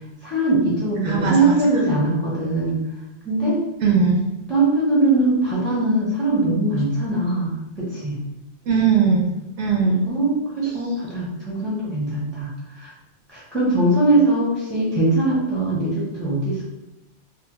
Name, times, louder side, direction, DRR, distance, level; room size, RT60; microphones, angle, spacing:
voice 1, 0.2-2.8 3.2-3.6 4.5-8.2 9.8-12.5 12.8-12.9 13.3-16.6, right 2 dB, ahead, -7 dB, 0.4 m, -21 dB
voice 2, 1.0-1.5 3.8-4.2 8.7-9.3 9.6-10.0, right 5 dB, 85° right, -1 dB, 0.9 m, -19 dB
2.8 x 2.0 x 2.8 m, 0.94 s
omnidirectional pair, 1.2 m